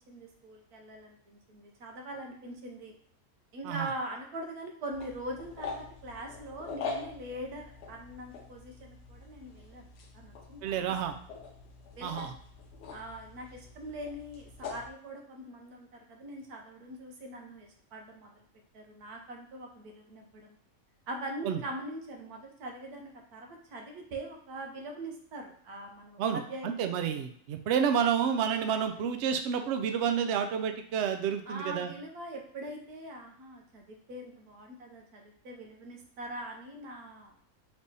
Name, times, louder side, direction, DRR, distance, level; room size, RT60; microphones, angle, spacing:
voice 1, 0.1-2.9 3.5-9.9 10.1-11.0 12.0-12.3 12.9-18.3 18.7-20.6 21.1-26.7 31.5-37.3, right 1 dB, 85° right, 2 dB, 1.4 m, -42 dB
sound 1, 4.9-14.9, left 4 dB, 60° left, 0.8 m, -44 dB
voice 2, 10.6-11.1 12.0-12.3 21.4-21.6 26.2-31.9, right 7 dB, 70° right, 6 dB, 0.7 m, -30 dB
3.4 x 3.3 x 4.0 m, 0.63 s
omnidirectional pair, 1.6 m